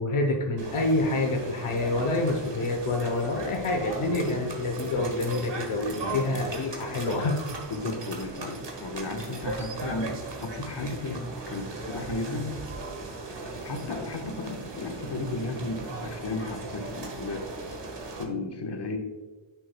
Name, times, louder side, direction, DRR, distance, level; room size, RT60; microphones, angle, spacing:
voice 1, 0.0-7.4, left 2 dB, 80° left, 2 dB, 1.0 m, -27 dB
sound 1, 0.6-18.2, right 2 dB, 55° right, 1.5 m, -37 dB
voice 2, 4.0-4.5 4.8-4.9 5.9-6.4 7.7-12.6 13.5-17.5 18.1-19.0, left 2 dB, 55° left, 3 dB, 1.3 m, -34 dB
9.5 x 6.1 x 2.3 m, 1.3 s
cardioid pair, 45°, 50 cm